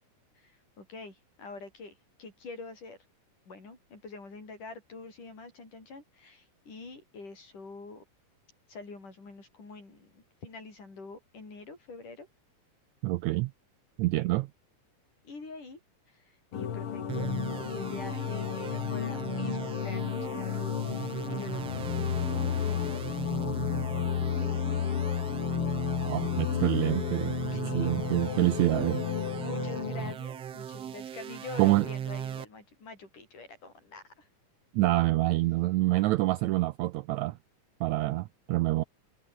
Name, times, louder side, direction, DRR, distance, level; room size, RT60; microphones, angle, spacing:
voice 1, 0.4-3.0 3.5-8.0 8.7-12.3 15.2-15.8 16.1-21.9 22.3-23.2 23.9-25.4 27.5-27.9 29.4-34.3, left 3 dB, 70° left, 9.5 m, -46 dB
voice 2, 13.0-13.5 14.0-14.5 26.0-27.3 27.7-29.0 31.6-31.8 34.7-37.4 37.8-38.8, right 18 dB, 80° right, 1.7 m, -26 dB
sound 1, 16.5-30.1, left 8 dB, 50° left, 2.1 m, -32 dB
sound 2, 17.1-32.5, right 9 dB, 55° right, 2.6 m, -39 dB
omnidirectional pair, 3.8 m